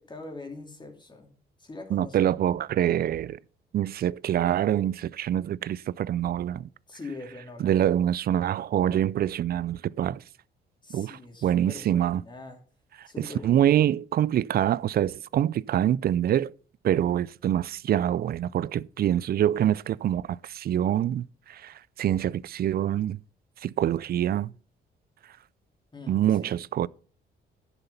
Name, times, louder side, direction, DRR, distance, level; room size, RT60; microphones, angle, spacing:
voice 1, 0.1-1.3 1.6-2.3 6.9-7.8 10.8-12.6 13.1-13.6 25.9-26.6, left 3 dB, 20° left, 2.9 m, -43 dB
voice 2, 1.9-3.4 3.7-6.7 7.6-10.2 10.9-12.2 13.0-16.5 16.8-23.2 23.6-24.5 26.1-26.9, right 11 dB, 50° right, 0.4 m, -25 dB
11.0 x 6.9 x 5.6 m
cardioid pair, 90°, 20 cm